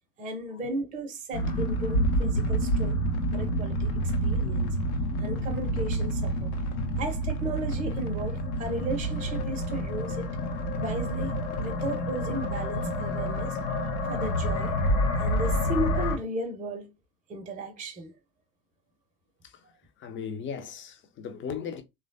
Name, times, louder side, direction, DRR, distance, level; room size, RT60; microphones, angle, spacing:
voice 1, 0.2-3.0 3.3-4.8 5.2-6.5 7.0-10.3 10.8-11.3 11.6-13.6 14.1-14.7 15.2-16.9 17.3-18.1, right 1 dB, 15° right, 0.6 m, -35 dB
sound 1, 1.3-16.2, equal, 65° left, 0.8 m, -28 dB
voice 2, 20.0-21.8, left 7 dB, 25° left, 0.5 m, -37 dB
3.2 x 2.2 x 2.5 m
figure-of-eight pair, 65°, 48 cm